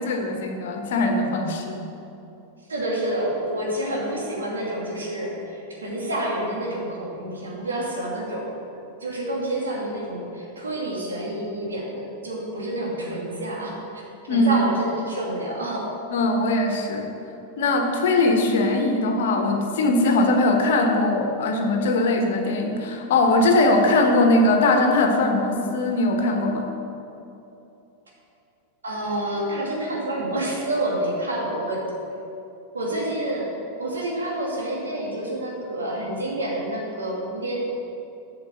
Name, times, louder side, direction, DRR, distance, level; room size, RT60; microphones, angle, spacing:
voice 1, 0.0-1.8 14.3-14.5 16.1-17.1 17.6-26.7, left 2 dB, 55° left, 4 dB, 1.2 m, -21 dB
voice 2, 2.7-13.7 14.3-15.9 28.8-31.8 32.7-33.5 33.8-37.5, right 1 dB, 70° right, -3 dB, 2.4 m, -28 dB
8.5 x 5.8 x 7.5 m, 2.8 s
figure-of-eight pair, 90°, 0 cm